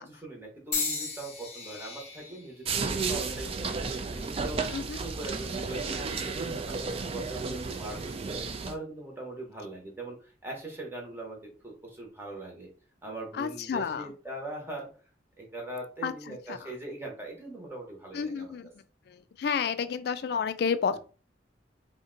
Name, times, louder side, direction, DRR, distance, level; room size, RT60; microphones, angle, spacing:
voice 1, 0.0-3.7 4.1-6.4 6.7-8.4 8.7-12.7 13.0-14.9 15.4-18.5 20.9-21.0, right 2 dB, 15° right, 0 dB, 0.8 m, -41 dB
sound 1, 0.7-4.8 5.6-6.0 6.9-7.1, left 4 dB, 35° left, 0.8 m, -38 dB
sound 2, 2.7-8.8, right 4 dB, 35° right, 0.3 m, -33 dB
voice 2, 13.4-14.1 16.0-16.6 18.1-18.7 19.1-21.0, left 6 dB, 60° left, 12 dB, 0.3 m, -31 dB
2.6 x 2.1 x 3.7 m, 0.38 s
head